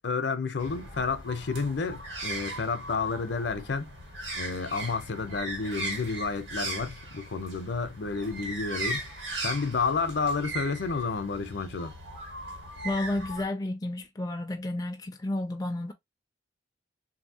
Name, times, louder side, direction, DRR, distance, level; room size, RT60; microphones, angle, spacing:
voice 1, 0.0-3.9 4.3-9.0 9.4-11.9, left 4 dB, 65° left, 0.6 m, -30 dB
sound 1, 0.6-13.5, right 2 dB, 65° right, 1.5 m, -38 dB
voice 2, 12.8-15.9, left 1 dB, 20° left, 0.3 m, -31 dB
3.1 x 2.7 x 2.7 m
head